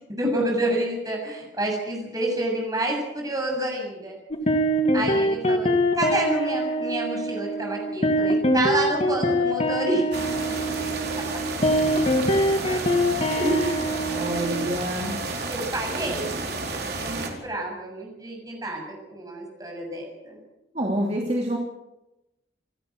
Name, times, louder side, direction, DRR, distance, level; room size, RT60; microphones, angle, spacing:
voice 1, 0.2-4.2 4.9-5.7 5.9-10.0 11.2-11.3 13.3-13.9 14.5-14.6 15.5-16.4 16.7-20.4, right 1 dB, 20° right, 1 dB, 7.3 m, -28 dB
sound 1, 4.3-14.6, equal, 35° left, 1.9 m, -24 dB
sound 2, 10.1-17.3, right 2 dB, 60° right, 4.4 m, -31 dB
voice 2, 13.4-15.2 20.7-21.6, right 1 dB, 35° right, 0 dB, 2.9 m, -28 dB
28.5 x 13.0 x 7.7 m, 0.96 s
head